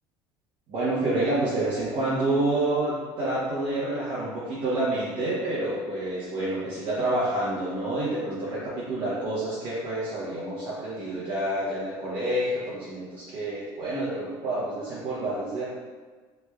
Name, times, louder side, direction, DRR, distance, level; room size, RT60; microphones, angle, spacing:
voice 1, 0.7-15.6, right 1 dB, 40° right, -10 dB, 0.8 m, -28 dB
3.2 x 3.1 x 2.3 m, 1.4 s
cardioid pair, 165°, 10 cm